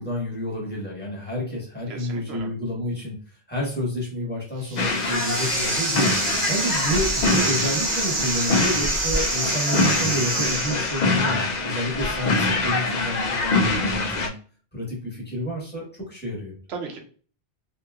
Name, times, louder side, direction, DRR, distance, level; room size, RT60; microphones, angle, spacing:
voice 1, 0.0-3.2 3.5-14.3 14.7-16.5, equal, 10° left, -4 dB, 1.1 m, -29 dB
voice 2, 1.9-2.5 6.4-6.7 16.7-17.0, right 5 dB, 90° right, 3 dB, 1.0 m, -36 dB
sound 1, 4.6-11.3, right 3 dB, 40° right, 0.5 m, -27 dB
sound 2, 4.8-14.3, left 3 dB, 55° left, 0.6 m, -24 dB
2.9 x 2.7 x 2.3 m, 0.42 s
omnidirectional pair, 1.0 m